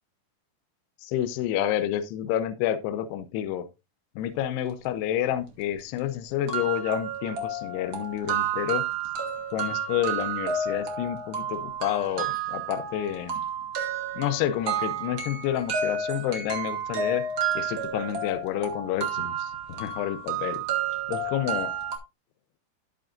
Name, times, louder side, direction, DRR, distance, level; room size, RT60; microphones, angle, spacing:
voice 1, 1.0-3.7 4.2-8.8 9.5-13.3 14.2-17.2 17.6-20.6 21.1-21.7, left 11 dB, 75° left, 2.7 m, -29 dB
sound 1, 5.5-5.6 6.0-6.1 6.5-22.0, right 5 dB, 65° right, 1.2 m, -31 dB
13.5 x 6.2 x 2.5 m
omnidirectional pair, 5.1 m